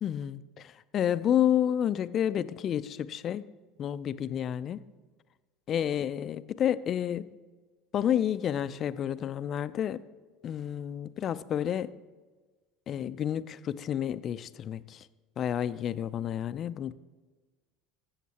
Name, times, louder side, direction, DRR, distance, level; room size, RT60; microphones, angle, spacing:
voice 1, 0.0-3.5 3.8-4.8 5.7-7.3 7.9-10.0 10.4-12.0 12.9-15.1 15.4-16.9, left 10 dB, 45° left, 15 dB, 0.4 m, -30 dB
14.0 x 7.3 x 2.9 m, 1.3 s
hypercardioid pair, 90°, 0 cm